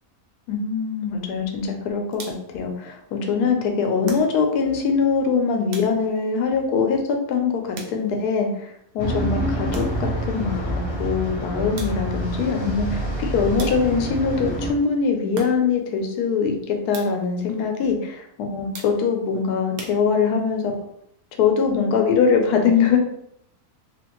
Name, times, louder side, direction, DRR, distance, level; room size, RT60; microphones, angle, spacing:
voice 1, 0.5-2.2 2.5-20.7 21.4-23.0, left 5 dB, 85° left, 4 dB, 1.1 m, -22 dB
sound 1, 2.1-2.6 4.0-4.7 5.7-6.3 7.7-8.3 9.7-10.2 11.8-12.3 13.6-14.2 15.3-15.9 16.9-17.4 18.7-19.3 19.8-20.5, right 4 dB, 70° right, 1.1 m, -39 dB
sound 2, 9.0-14.7, right 1 dB, 25° left, 0.7 m, -27 dB
2.8 x 2.5 x 2.9 m, 0.73 s
omnidirectional pair, 1.6 m